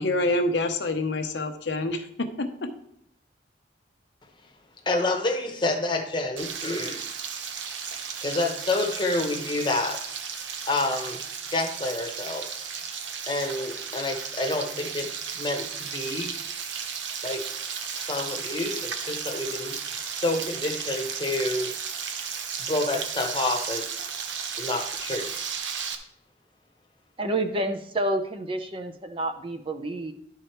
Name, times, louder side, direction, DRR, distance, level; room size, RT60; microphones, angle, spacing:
voice 1, 0.0-2.7, left 2 dB, 70° left, 6 dB, 0.9 m, -27 dB
voice 2, 4.9-7.0 7.9-10.0 10.7-11.2 11.5-12.9 13.3-16.3 17.2-17.4 18.0-21.7 22.6-24.1 24.6-25.3, left 2 dB, 25° left, 4 dB, 1.0 m, -29 dB
Frying (food), 6.4-25.9, right 7 dB, 80° right, 0.9 m, -34 dB
voice 3, 27.2-30.1, right 1 dB, 30° right, 7 dB, 0.6 m, -29 dB
11.0 x 4.7 x 4.5 m, 0.69 s
head